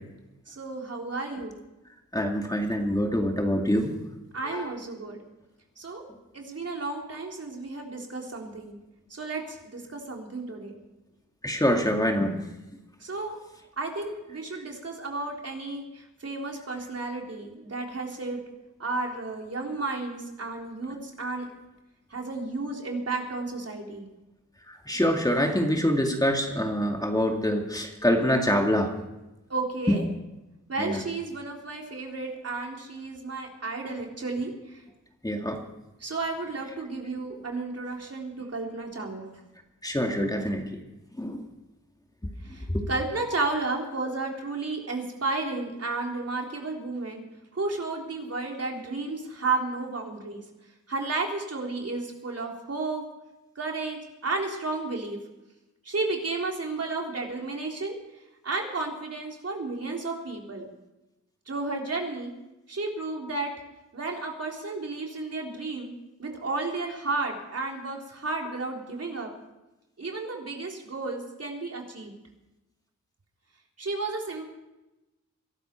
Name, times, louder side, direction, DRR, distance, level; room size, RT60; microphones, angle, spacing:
voice 1, 0.5-1.5 4.3-5.2 5.8-6.0 6.3-8.8 9.1-10.8 13.0-13.4 13.8-18.4 18.8-21.5 22.1-24.1 29.5-30.0 30.7-34.8 36.0-39.4 40.2-40.3 42.4-47.2 47.5-50.4 50.9-53.0 53.6-55.2 55.8-58.0 58.4-60.7 61.5-62.3 62.7-63.5 63.9-65.9 66.2-69.3 70.0-72.1 73.8-74.5, right 3 dB, 55° right, 0 dB, 3.7 m, -32 dB
voice 2, 2.1-4.0 4.5-4.6 11.4-12.4 24.7-28.9 29.9-30.0 30.8-31.0 35.2-35.6 39.8-40.6 41.2-41.4 42.7-42.8, equal, 10° left, 2 dB, 2.3 m, -25 dB
22.0 x 12.5 x 4.6 m, 1.0 s
cardioid pair, 65°, 30 cm